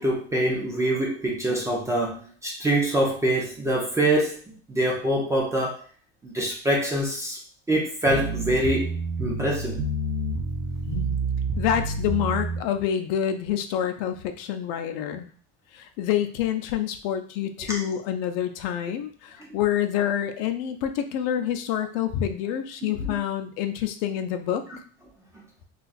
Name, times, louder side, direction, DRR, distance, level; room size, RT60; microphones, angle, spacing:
voice 1, 0.0-4.4 4.7-5.8 6.2-7.4 7.7-8.9 9.2-9.8 17.7-17.8 23.0-23.1, right 1 dB, 10° right, -3 dB, 0.3 m, -25 dB
sound 1, 8.1-12.6, right 2 dB, 50° right, 0.8 m, -28 dB
voice 2, 10.9-11.2 11.6-15.3 15.7-24.6, left 10 dB, 75° left, 8 dB, 0.5 m, -27 dB
2.5 x 2.4 x 3.9 m, 0.43 s
cardioid pair, 165°, 33 cm